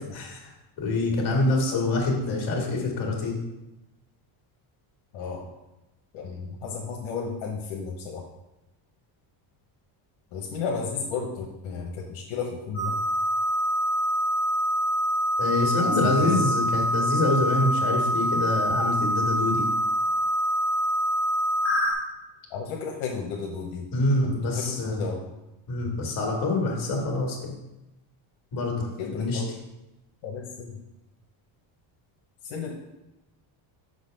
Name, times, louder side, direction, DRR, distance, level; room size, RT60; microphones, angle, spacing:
voice 1, 0.8-3.4 15.4-19.6 23.9-25.1 25.7-27.4 28.5-29.4, left 2 dB, 45° left, 0 dB, 1.8 m, -26 dB
voice 2, 5.1-5.5 6.1-8.2 10.3-12.9 15.8-16.4 22.5-23.9 24.2-25.2 29.0-29.5 30.2-30.8 32.4-32.7, left 5 dB, 75° left, -1 dB, 1.1 m, -33 dB
sound 1, 12.7-21.9, equal, 5° left, 1.5 m, -25 dB
6.2 x 4.0 x 5.1 m, 0.98 s
cardioid pair, 165°, 47 cm